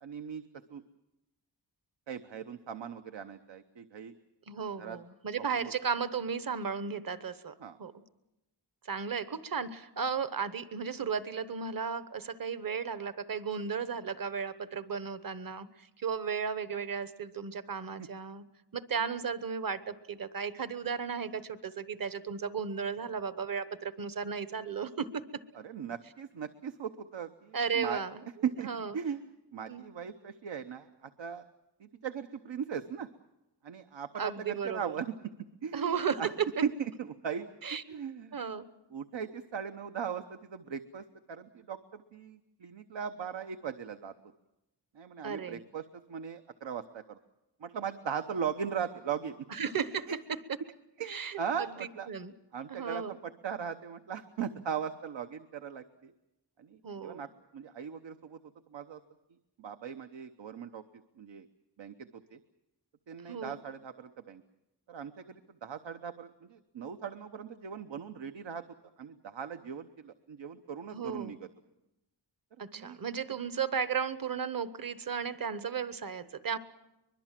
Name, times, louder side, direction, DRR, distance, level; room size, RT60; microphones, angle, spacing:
voice 1, 0.0-0.4 0.7-0.8 2.1-4.1 4.8-5.0 5.5-5.7 7.6-7.8 18.0-18.1 25.5-28.0 28.4-28.7 28.9-29.2 29.5-31.4 31.8-33.1 33.6-35.1 35.6-36.3 36.6-37.5 37.9-38.4 38.9-44.1 44.9-45.8 46.1-47.2 47.6-49.5 50.1-50.2 51.0-52.1 52.5-56.1 56.6-58.4 58.7-59.0 59.6-60.8 61.2-61.5 61.8-62.4 63.1-64.4 64.9-68.6 69.0-71.5 72.7-73.0, right 7 dB, 85° right, 8 dB, 1.0 m, -39 dB
voice 2, 4.5-7.5 7.8-7.9 8.8-18.4 18.7-25.2 27.5-28.2 28.6-29.0 29.7-29.8 34.2-34.9 35.7-36.6 37.6-38.0 38.3-38.6 45.2-45.6 49.5-50.1 51.1-51.7 52.1-52.3 52.7-53.2 56.8-57.3 63.3-63.6 70.9-71.4 72.6-76.6, right 6 dB, 50° right, 13 dB, 1.1 m, -35 dB
23.5 x 22.0 x 7.5 m, 0.95 s
wide cardioid pair, 135°, 44 cm